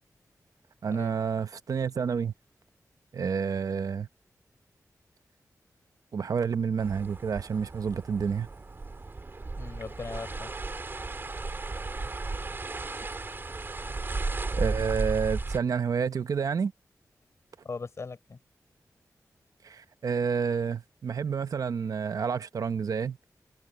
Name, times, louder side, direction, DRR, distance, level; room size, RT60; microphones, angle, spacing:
voice 1, 0.8-2.3 3.1-4.1 6.1-8.5 14.5-16.7 19.6-23.2, right 6 dB, 75° right, 0.9 m, -29 dB
sound 1, 6.8-15.6, right 3 dB, 35° right, 2.7 m, -35 dB
voice 2, 9.5-10.5 17.6-18.4, left 4 dB, 50° left, 4.6 m, -39 dB
wide cardioid pair, 120°, 6 cm